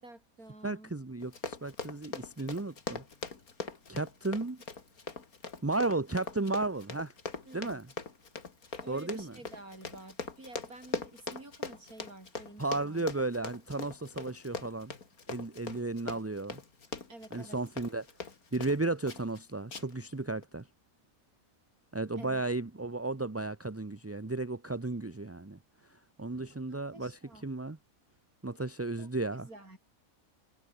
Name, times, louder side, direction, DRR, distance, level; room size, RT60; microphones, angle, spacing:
voice 1, 0.0-0.9 7.5-7.8 8.8-13.1 17.1-17.6 22.2-22.4 26.3-27.4 29.0-29.8, right 2 dB, 85° right, 8.1 m, -50 dB
voice 2, 0.6-3.0 3.9-4.6 5.6-7.1 7.5-7.9 8.9-9.3 12.6-14.9 15.3-16.6 17.3-18.1 18.5-20.7 21.9-25.6 25.9-27.8 28.4-29.5, right 2 dB, 15° right, 0.6 m, -34 dB
Run, 1.2-18.8 19.1-19.4 19.7-20.1 20.4-20.5, left 4 dB, 80° left, 2.9 m, -41 dB
omnidirectional pair, 1.5 m